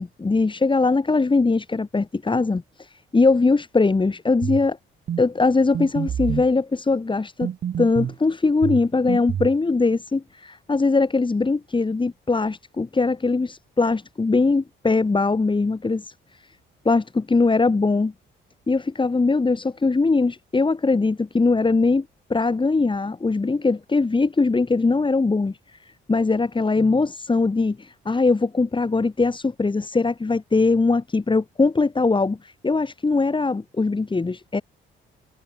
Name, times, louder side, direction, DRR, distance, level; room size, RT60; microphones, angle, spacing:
voice 1, 0.0-4.8 5.2-7.5 7.8-16.4 16.8-18.1 18.7-25.8 26.1-34.6, left 3 dB, 25° left, 6.0 m, -21 dB
sound 1, 4.4-4.7 5.1-5.2 5.7-6.5 7.4-8.2 8.6-9.6, right 9 dB, 60° right, 2.7 m, -27 dB
cardioid pair, 90°, 20 cm